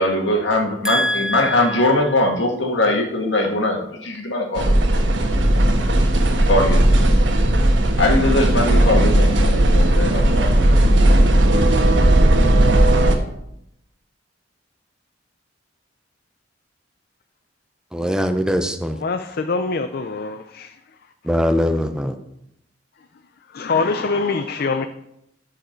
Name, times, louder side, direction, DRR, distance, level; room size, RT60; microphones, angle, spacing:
voice 1, 0.0-5.0 6.5-7.1 8.0-10.5, left 1 dB, 80° left, 2 dB, 1.7 m, -21 dB
voice 2, 0.8-1.9 17.9-19.0 21.2-22.2, equal, 5° right, 7 dB, 0.5 m, -22 dB
sound 1, 4.5-13.2, right 1 dB, 80° right, 1.2 m, -16 dB
voice 3, 19.0-20.7 23.5-24.9, left 4 dB, 55° left, 9 dB, 0.5 m, -24 dB
13.5 x 4.8 x 4.5 m, 0.80 s
head